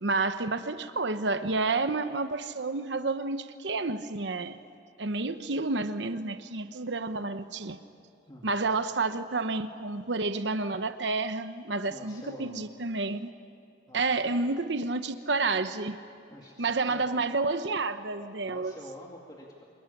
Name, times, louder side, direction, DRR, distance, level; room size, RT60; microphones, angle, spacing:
voice 1, 0.0-4.6 5.0-7.8 8.4-13.3 13.9-16.0 16.6-18.7, right 3 dB, 70° right, 10 dB, 0.9 m, -30 dB
voice 2, 11.9-12.7 13.9-14.3 16.3-17.1 18.4-19.6, equal, 20° left, -2 dB, 2.3 m, -46 dB
26.5 x 22.0 x 9.9 m, 2.5 s
head